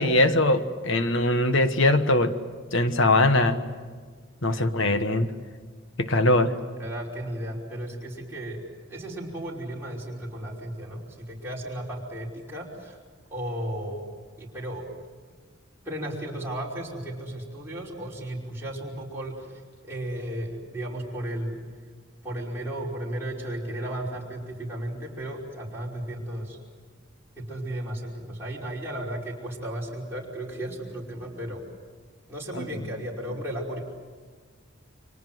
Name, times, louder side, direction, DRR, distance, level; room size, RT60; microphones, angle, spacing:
voice 1, 0.0-2.3 2.7-3.6 4.4-5.3 6.0-6.6 32.5-32.7, left 1 dB, 70° left, 9 dB, 1.4 m, -21 dB
voice 2, 6.8-8.6 8.9-13.0 13.3-14.1 14.4-14.9 15.8-21.6 22.2-26.6 27.4-31.6 32.3-33.8, right 1 dB, 10° right, -5 dB, 5.2 m, -34 dB
30.0 x 25.5 x 7.8 m, 1.5 s
head